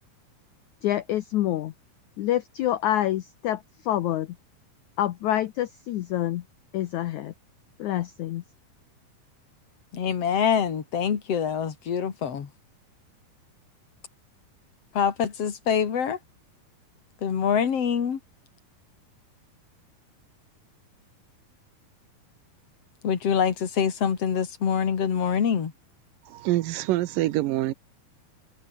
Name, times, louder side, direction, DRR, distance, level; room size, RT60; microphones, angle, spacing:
voice 1, 0.8-1.7 2.2-4.4 5.0-6.4 6.7-7.3 7.8-8.4, left 13 dB, 70° left, 1.9 m, -27 dB
voice 2, 9.9-12.5 14.9-16.2 17.2-18.2 23.0-25.7, left 7 dB, 45° left, 3.1 m, -25 dB
voice 3, 26.3-27.7, right 16 dB, 75° right, 2.4 m, -25 dB
omnidirectional pair, 4.3 m